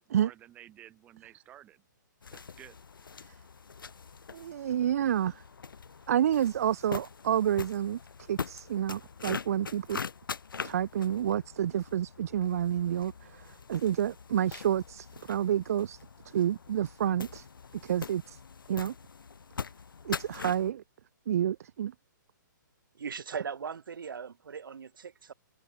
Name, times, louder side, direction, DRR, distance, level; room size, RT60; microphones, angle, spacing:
voice 1, 0.0-1.8 2.3-2.8, right 12 dB, 15° right, 1.3 m, -53 dB
sound 1, 2.2-20.7, left 5 dB, 90° left, 6.7 m, -43 dB
voice 2, 4.3-5.4 6.1-8.0 8.3-10.0 10.6-17.5 17.8-18.4 18.7-18.9 20.0-20.8 21.3-21.9, right 10 dB, 45° right, 0.4 m, -29 dB
voice 3, 22.9-25.3, right 6 dB, 85° right, 1.2 m, -39 dB
hypercardioid pair, 165°, 11 cm